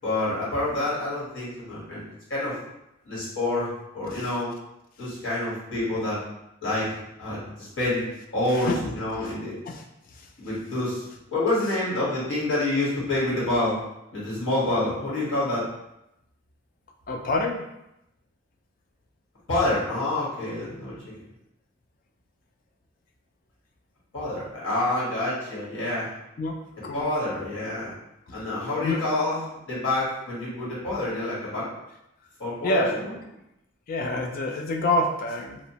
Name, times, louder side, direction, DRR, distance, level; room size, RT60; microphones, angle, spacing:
voice 1, 0.0-2.6 3.0-4.5 5.0-6.2 6.6-8.1 8.3-9.5 10.4-13.8 14.1-15.6 19.5-20.9 24.1-26.1 26.9-27.9 28.3-31.7 32.4-32.9, left 2 dB, 75° left, -8 dB, 1.2 m, -27 dB
voice 2, 8.5-9.3 9.7-9.8 10.1-10.3 17.1-17.7 26.4-26.6 26.8-27.1 28.3-28.5 28.8-29.1 32.6-33.1 33.9-35.6, left 2 dB, 45° left, 2 dB, 0.3 m, -28 dB
2.8 x 2.0 x 2.8 m, 0.86 s
head